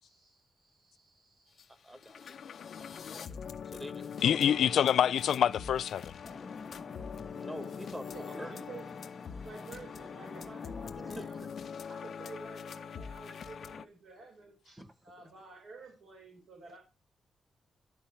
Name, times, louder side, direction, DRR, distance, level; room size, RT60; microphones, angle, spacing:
voice 1, 0.0-1.7 2.9-3.1 4.3-4.8 6.6-6.7 8.1-8.9 9.4-11.5 11.9-16.8, right 3 dB, 85° right, 4.2 m, -51 dB
sound 1, 1.6-1.7 1.9-13.9, left 7 dB, 65° left, 0.7 m, -43 dB
voice 2, 1.8-4.7 7.4-8.5 11.2-11.3 13.3-13.4 14.8-14.9, equal, 10° right, 1.2 m, -46 dB
voice 3, 4.2-6.1, left 9 dB, 85° left, 0.4 m, -26 dB
sound 2, 6.2-11.3, left 3 dB, 20° left, 0.5 m, -49 dB
12.0 x 4.3 x 5.6 m
wide cardioid pair, 120°, 0 cm